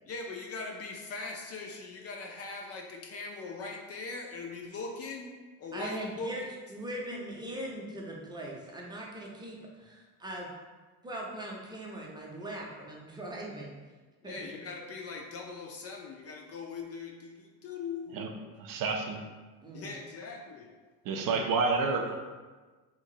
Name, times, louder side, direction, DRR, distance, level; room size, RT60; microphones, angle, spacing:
voice 1, 0.1-5.3 5.6-6.3 14.2-18.2 19.7-20.7 21.8-22.1, left 4 dB, 40° left, 1 dB, 0.4 m, -41 dB
voice 2, 5.7-10.5 11.0-13.8 14.2-14.6 19.6-19.9, right 1 dB, 10° right, -2 dB, 0.6 m, -40 dB
voice 3, 18.6-19.2 21.0-22.1, right 4 dB, 55° right, 3 dB, 0.5 m, -29 dB
2.9 x 2.4 x 2.7 m, 1.3 s
supercardioid pair, 90°, 41 cm